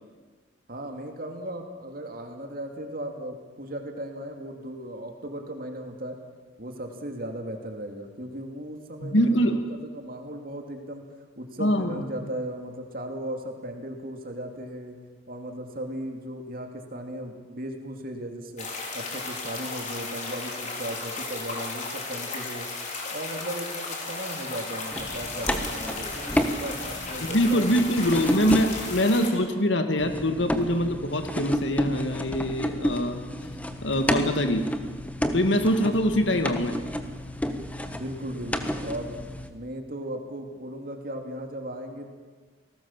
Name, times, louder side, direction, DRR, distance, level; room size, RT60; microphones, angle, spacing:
voice 1, 0.7-6.2 6.6-9.2 9.5-11.0 11.4-14.9 15.3-18.7 18.9-22.7 23.1-27.7 37.9-39.2 39.5-42.1, right 1 dB, 50° right, 4 dB, 2.7 m, -37 dB
voice 2, 9.0-9.6 11.6-12.0 27.2-33.2 33.8-34.7 35.3-36.8, equal, 75° left, 6 dB, 2.2 m, -24 dB
sound 1, 18.6-29.3, left 3 dB, 40° left, 4.8 m, -35 dB
sound 2, 24.9-29.0 30.0-39.5, equal, 10° left, 1.5 m, -31 dB
30.0 x 19.5 x 7.4 m, 1.4 s
head